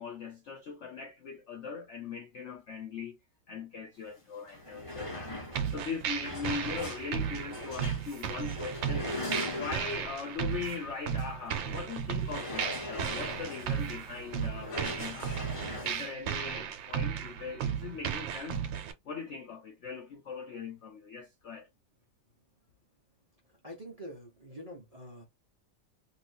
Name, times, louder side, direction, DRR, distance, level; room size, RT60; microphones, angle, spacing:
voice 1, 0.0-3.2 3.5-5.3 5.7-9.1 9.5-15.5 15.8-18.7 19.1-21.7, left 5 dB, 80° left, 0.6 m, -40 dB
sound 1, 4.1-4.2 4.4-10.1 10.6-10.8 11.2-11.3 12.2-16.1, left 1 dB, 20° left, 1.2 m, -40 dB
sound 2, 5.5-18.9, right 8 dB, 80° right, 1.4 m, -35 dB
voice 2, 23.6-25.2, equal, 35° right, 0.6 m, -45 dB
3.0 x 2.9 x 2.7 m
omnidirectional pair, 2.0 m